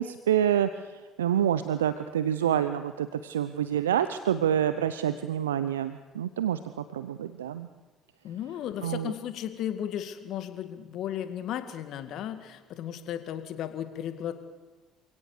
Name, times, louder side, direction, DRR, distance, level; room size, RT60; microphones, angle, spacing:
voice 1, 0.0-6.6 6.9-7.7 8.8-9.1, right 10 dB, 85° right, 12 dB, 0.7 m, -27 dB
voice 2, 8.2-14.3, left 10 dB, 60° left, 10 dB, 2.1 m, -35 dB
28.5 x 17.0 x 6.7 m, 1.2 s
hypercardioid pair, 60°, 0 cm